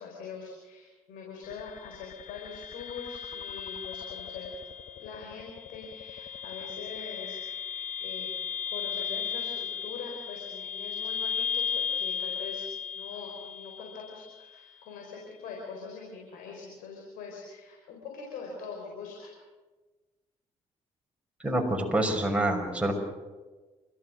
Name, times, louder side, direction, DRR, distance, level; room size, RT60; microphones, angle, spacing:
voice 1, 0.0-4.6 5.0-7.4 8.0-8.3 8.7-12.7 12.9-19.3, left 5 dB, 85° left, 0 dB, 4.7 m, -43 dB
sound 1, 1.4-14.4, left 7 dB, 65° left, 1.1 m, -36 dB
voice 2, 21.4-22.9, right 1 dB, 10° right, 1 dB, 5.8 m, -26 dB
29.0 x 14.0 x 7.8 m, 1.3 s
supercardioid pair, 60°, 14 cm